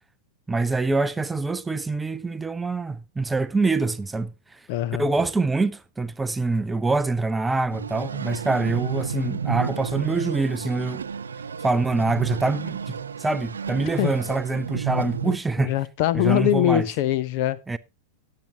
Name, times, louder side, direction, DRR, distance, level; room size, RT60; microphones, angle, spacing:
voice 1, 0.5-4.3 5.0-11.0 11.6-15.7 16.1-16.9 17.7-17.8, right 3 dB, 10° right, 0.5 m, -25 dB
voice 2, 4.7-5.1 14.0-14.1 15.2-17.6, left 13 dB, 45° left, 0.7 m, -23 dB
sound 1, 7.7-15.4, right 6 dB, 70° right, 0.7 m, -31 dB
17.5 x 7.6 x 2.8 m
figure-of-eight pair, 90°, 0 cm